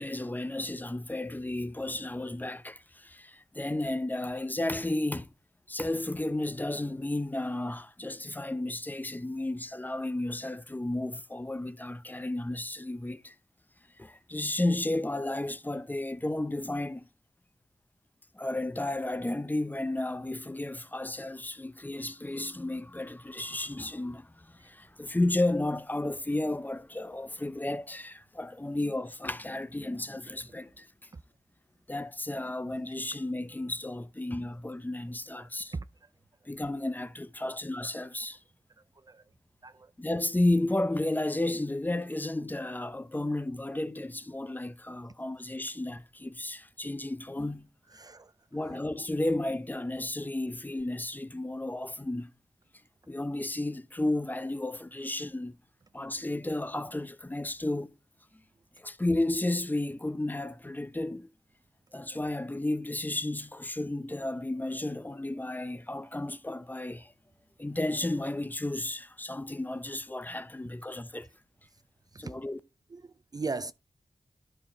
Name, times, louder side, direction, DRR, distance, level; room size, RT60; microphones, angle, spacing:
voice 1, 0.0-5.3 5.7-13.4 14.0-17.0 18.3-30.9 31.9-35.7 36.5-38.4 40.0-47.7 48.5-52.3 53.1-55.6 55.9-57.9 58.8-61.3 61.9-67.1 67.6-71.3 72.2-72.6, left 1 dB, 15° left, 0.6 m, -33 dB
voice 2, 35.3-35.9 37.5-37.6 38.8-39.3 39.6-39.9 47.9-48.3 48.6-48.8 50.2-50.3 61.9-62.0 72.1-72.3 72.9-73.7, right 4 dB, 35° right, 0.4 m, -40 dB
11.0 x 4.6 x 4.4 m
wide cardioid pair, 100°, 12 cm